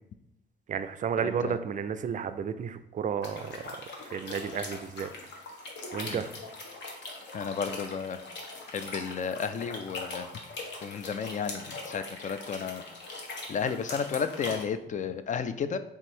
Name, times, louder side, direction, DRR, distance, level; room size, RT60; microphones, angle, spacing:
voice 1, 0.7-3.6 4.1-5.1 5.9-6.3, right 7 dB, 40° right, 11 dB, 0.4 m, -32 dB
voice 2, 1.2-1.6 6.1-6.2 7.3-8.2 8.7-10.3 10.8-12.8 13.5-15.8, left 6 dB, 40° left, 11 dB, 0.4 m, -33 dB
sound 1, 3.2-14.6, left 2 dB, 65° left, 1.1 m, -41 dB
3.4 x 3.0 x 4.4 m, 0.83 s
cardioid pair, 90°, 20 cm